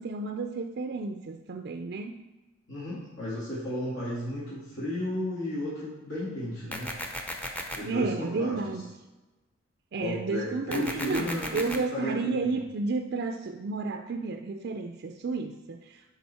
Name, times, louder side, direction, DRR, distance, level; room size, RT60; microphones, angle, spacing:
voice 1, 0.0-2.2 7.9-9.0 9.9-16.1, right 3 dB, 55° right, 5 dB, 0.4 m, -32 dB
voice 2, 2.7-6.9 7.7-8.6 10.0-12.6, left 1 dB, 70° left, -8 dB, 2.5 m, -33 dB
sound 1, 6.7-7.8 10.7-11.8, left 1 dB, 10° left, 0.6 m, -35 dB
10.5 x 4.0 x 4.2 m, 1.1 s
head